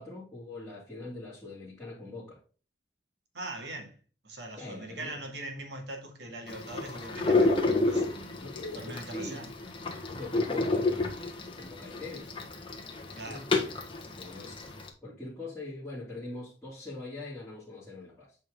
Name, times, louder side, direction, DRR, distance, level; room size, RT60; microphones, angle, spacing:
voice 1, 0.0-2.4 4.6-5.2 8.3-9.4 10.1-10.9 11.2-12.4 13.1-13.4 14.2-14.6 15.0-18.4, left 2 dB, ahead, 2.5 m, -42 dB
voice 2, 3.3-4.0 4.2-8.4 8.7-9.5 13.1-13.5, right 1 dB, 70° right, 2.3 m, -41 dB
sound 1, 6.5-14.9, left 2 dB, 30° left, 1.3 m, -30 dB
8.2 x 4.6 x 3.7 m
head